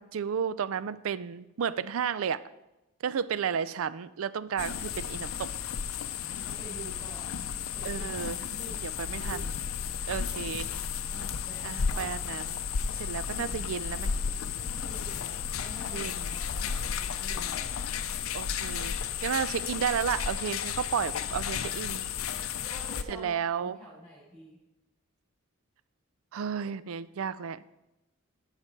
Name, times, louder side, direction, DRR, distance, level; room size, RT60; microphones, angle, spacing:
voice 1, 0.0-2.4 3.0-5.5 7.8-8.4 8.8-9.6 10.1-10.7 11.6-12.6 13.0-14.1 15.9-16.4 18.3-19.0 19.2-22.1 23.1-23.8 26.3-27.6, right 7 dB, 70° right, 17 dB, 0.4 m, -32 dB
sound 1, 4.6-23.0, left 7 dB, 70° left, 0.5 m, -33 dB
voice 2, 6.2-9.4 11.1-12.2 14.6-17.9 22.6-24.6, right 1 dB, 5° left, -10 dB, 4.1 m, -48 dB
13.5 x 5.8 x 4.5 m, 0.98 s
head